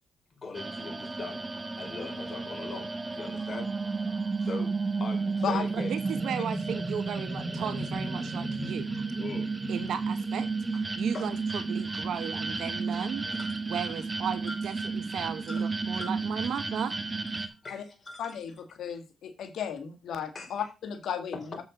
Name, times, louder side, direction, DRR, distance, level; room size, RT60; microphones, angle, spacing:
voice 1, 0.3-1.5 1.8-3.7 4.4-4.7 5.0-5.9 9.2-9.5 11.1-11.3 13.3-13.6 14.5-14.6 15.5-16.2 17.5-18.4 20.3-20.7 21.3-21.6, left 4 dB, 35° left, 3.7 m, -41 dB
sound 1, 0.5-17.5, right 3 dB, 20° right, 1.4 m, -32 dB
voice 2, 5.7-8.9 9.7-10.5 11.0-13.3 13.7-17.0, right 8 dB, 70° right, 1.3 m, -35 dB
voice 3, 18.2-21.4, left 8 dB, 70° left, 2.0 m, -34 dB
7.9 x 6.3 x 5.1 m
cardioid pair, 80°, 0 cm